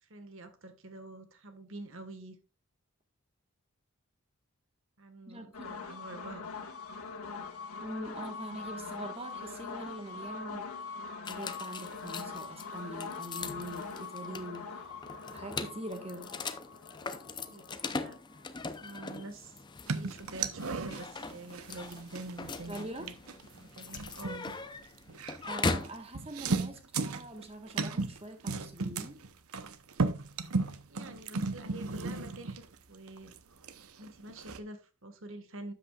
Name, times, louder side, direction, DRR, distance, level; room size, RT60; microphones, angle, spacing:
voice 1, 0.0-2.4 5.0-6.5 17.5-18.2 18.8-19.6 19.9-23.1 23.5-24.5 30.9-32.6 32.9-33.3 34.0-35.7, right 2 dB, 60° right, 1.5 m, -46 dB
voice 2, 5.3-5.7 7.8-10.7 11.2-15.0 15.3-16.3 22.7-23.1 25.4-29.2, right 1 dB, 25° right, 1.4 m, -43 dB
sound 1, 5.5-19.2, left 4 dB, 80° left, 1.7 m, -43 dB
sound 2, 11.2-26.0, left 3 dB, 20° left, 0.5 m, -40 dB
sound 3, 19.9-25.5 25.8-25.9 26.1-28.2 28.5-33.4 33.6-34.6, right 4 dB, 80° right, 0.8 m, -35 dB
12.5 x 8.3 x 2.4 m
head